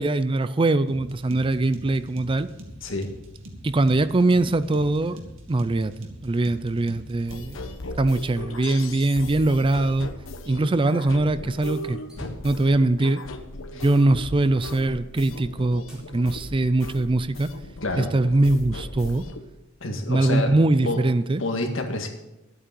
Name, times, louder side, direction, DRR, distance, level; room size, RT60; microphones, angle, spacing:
voice 1, 0.0-2.5 3.6-5.2 5.5-5.9 6.2-7.6 8.0-10.1 10.5-12.0 12.4-13.2 13.7-17.5 18.0-19.2 20.1-21.4, right 2 dB, 25° right, 14 dB, 0.4 m, -22 dB
sound 1, 0.9-7.7, equal, 80° right, 2.2 m, -43 dB
voice 2, 2.8-3.1 13.7-13.8 17.8-18.1 19.8-20.6 20.8-21.0 21.4-22.1, left 2 dB, 70° left, 4 dB, 2.0 m, -28 dB
sound 2, 7.3-19.4, left 1 dB, 90° left, 1.1 m, -38 dB
sound 3, 12.1-12.6 13.3-13.4 13.8-15.2 15.9-16.0 16.8-17.8, equal, 5° right, 4.0 m, -41 dB
11.5 x 8.8 x 6.9 m, 0.95 s
head